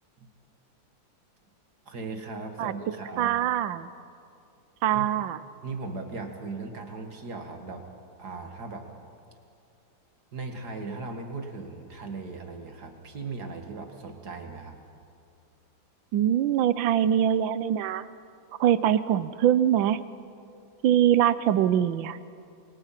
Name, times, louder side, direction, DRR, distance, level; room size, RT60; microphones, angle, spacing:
voice 1, 1.9-3.4 4.9-5.1 5.6-7.9 8.2-8.9 10.3-14.8, right 3 dB, 55° right, 5 dB, 2.3 m, -38 dB
voice 2, 3.2-3.9 4.8-5.4 16.1-18.1 18.6-20.0 20.8-22.2, right 10 dB, 75° right, 15 dB, 1.4 m, -23 dB
27.5 x 23.0 x 5.9 m, 2.5 s
omnidirectional pair, 2.1 m